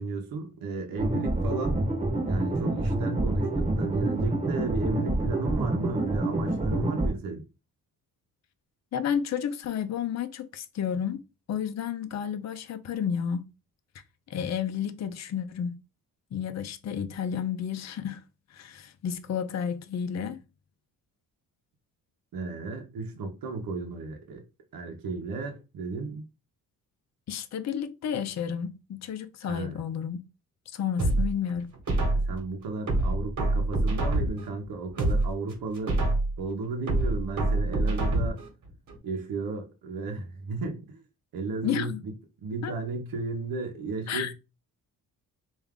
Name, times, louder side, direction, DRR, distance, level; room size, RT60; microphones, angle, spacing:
voice 1, 0.0-1.8 2.2-7.4 22.3-24.4 24.7-26.2 29.5-29.8 32.2-36.0 36.4-38.4 39.0-41.0 41.3-42.1 42.4-44.3, right 3 dB, 70° right, 1.0 m, -34 dB
sound 1, 1.0-7.1, right 2 dB, 20° right, 1.1 m, -27 dB
voice 2, 8.9-11.2 11.5-13.5 14.3-15.8 16.3-18.2 18.5-20.4 27.3-30.2 30.7-31.7 41.6-42.0 42.6-42.7 44.1-44.3, left 8 dB, 50° left, 0.6 m, -31 dB
sound 2, 31.0-32.4 32.9-34.5 34.9-36.4 36.9-38.5 38.9-39.0, right 2 dB, 55° right, 1.4 m, -26 dB
3.4 x 2.6 x 3.6 m
cardioid pair, 90°, 36 cm